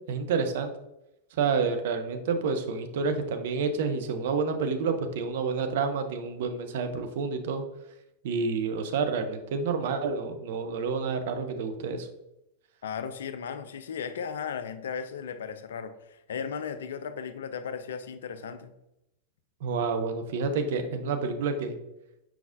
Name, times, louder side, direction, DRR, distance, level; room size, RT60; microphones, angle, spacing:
voice 1, 0.1-0.7 1.4-7.6 8.2-12.1 19.6-21.8, right 5 dB, 55° right, 6 dB, 0.5 m, -29 dB
voice 2, 12.8-18.7, left 7 dB, 60° left, 10 dB, 0.3 m, -36 dB
4.6 x 3.7 x 2.5 m, 0.86 s
figure-of-eight pair, 90°, 0 cm